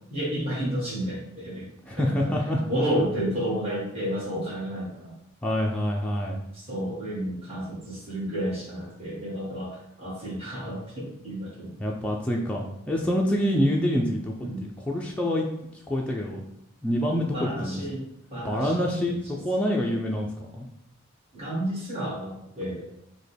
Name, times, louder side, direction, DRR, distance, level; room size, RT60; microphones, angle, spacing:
voice 1, 0.1-1.7 2.0-2.3 2.7-5.1 6.5-11.7 14.4-14.6 17.3-18.0 18.3-19.4 21.3-22.8, equal, 25° right, -7 dB, 1.5 m, -31 dB
voice 2, 1.9-2.6 5.4-6.4 11.8-14.3 14.6-15.5 15.9-16.4 16.8-17.8 18.4-20.7, equal, 5° left, -2 dB, 0.3 m, -26 dB
6.0 x 2.2 x 3.3 m, 0.78 s
head